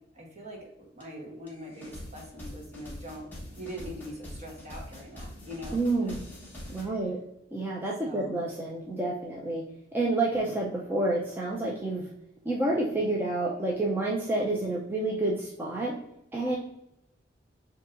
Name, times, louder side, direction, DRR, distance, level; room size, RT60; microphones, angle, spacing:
voice 1, 0.1-0.7 0.9-3.3 3.6-6.1 6.7-6.9 8.0-8.4, equal, 40° right, 0 dB, 1.2 m, -42 dB
sound 1, 1.0-1.1 1.5-6.8, equal, 10° left, 1.3 m, -44 dB
voice 2, 5.7-6.2 6.7-7.2 7.5-9.6 9.9-12.1 12.4-15.9 16.3-16.6, right 2 dB, 10° right, -3 dB, 0.5 m, -29 dB
6.6 x 2.8 x 2.5 m, 0.83 s
head